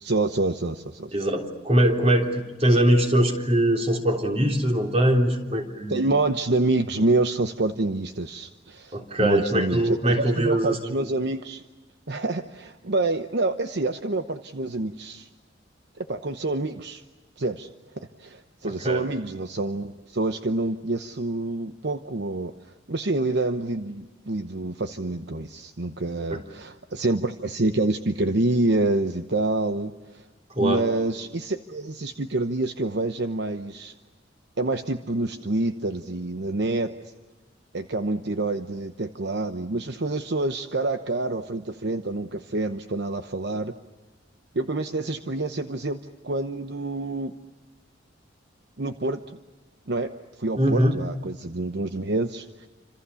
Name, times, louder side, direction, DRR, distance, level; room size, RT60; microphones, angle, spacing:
voice 1, 0.0-1.1 5.9-11.6 12.1-15.3 16.0-17.0 17.4-17.7 17.9-30.3 30.6-33.9 34.6-37.1 37.7-43.7 44.5-47.4 48.8-49.2 49.9-50.1 50.4-52.7, right 2 dB, 60° right, 8 dB, 1.0 m, -27 dB
voice 2, 1.1-6.0 8.9-11.1 18.6-19.0 26.3-26.4 30.5-30.9 50.6-50.9, right 1 dB, 30° right, 3 dB, 3.5 m, -22 dB
30.0 x 26.5 x 7.0 m, 1.2 s
head